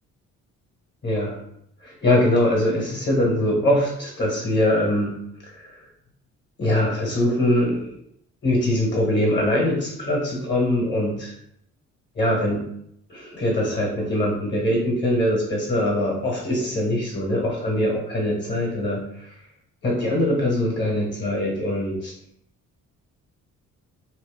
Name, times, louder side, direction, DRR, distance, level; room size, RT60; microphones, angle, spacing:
voice 1, 1.0-1.4 1.8-5.8 6.6-7.9 8.4-11.3 12.1-12.6 13.1-19.3 19.8-22.1, left 1 dB, 35° left, -2 dB, 1.1 m, -22 dB
2.8 x 2.0 x 3.3 m, 0.73 s
cardioid pair, 90°, 30 cm